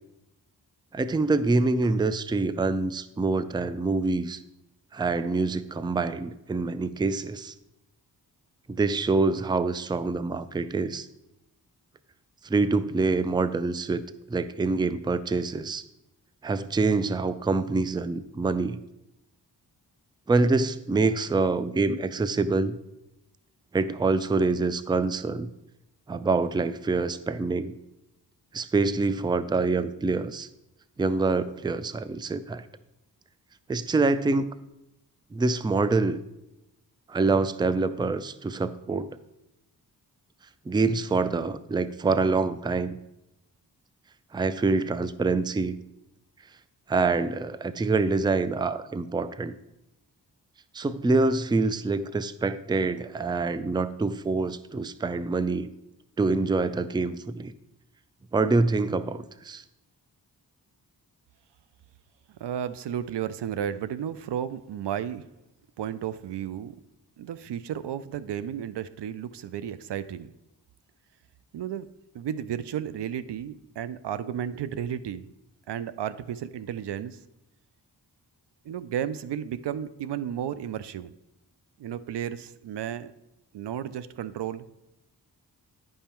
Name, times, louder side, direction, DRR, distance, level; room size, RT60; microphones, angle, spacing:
voice 1, 0.9-4.4 4.9-7.5 8.7-11.1 12.4-14.0 14.3-15.8 16.4-18.8 20.3-22.8 23.7-25.5 26.1-27.7 28.5-30.5 31.0-32.6 33.7-34.5 35.3-36.2 37.1-39.2 40.7-43.0 44.3-45.8 46.9-49.5 50.7-55.7 56.2-57.5 58.3-59.6, right 3 dB, 10° right, 14 dB, 0.4 m, -26 dB
voice 2, 62.4-65.3 65.8-66.8 67.2-70.3 71.5-71.9 72.1-75.3 75.7-77.2 78.7-81.1 81.8-83.1 83.5-84.7, right 9 dB, 85° right, 15 dB, 0.5 m, -33 dB
9.9 x 5.5 x 4.4 m, 0.90 s
wide cardioid pair, 70°, 40 cm